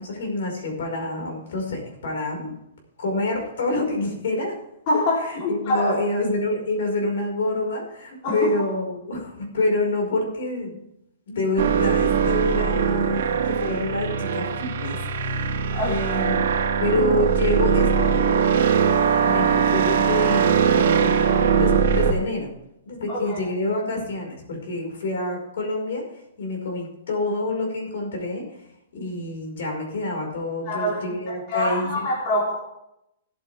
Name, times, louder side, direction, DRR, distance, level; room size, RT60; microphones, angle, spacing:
voice 1, 0.0-2.5 3.0-4.5 5.3-10.8 11.3-15.5 15.8-16.5 16.8-18.4 19.2-21.2 21.5-22.5 22.8-26.0 26.4-28.4 28.9-32.1, left 2 dB, 65° left, 1 dB, 5.0 m, -27 dB
voice 2, 4.9-6.0 8.2-8.5 15.7-16.1 23.1-23.4 30.7-32.6, left 1 dB, 35° left, -4 dB, 3.5 m, -25 dB
sound 1, 11.6-22.1, right 6 dB, 60° right, 2.4 m, -21 dB
18.0 x 8.6 x 3.5 m, 0.83 s
hypercardioid pair, 165°, 0 cm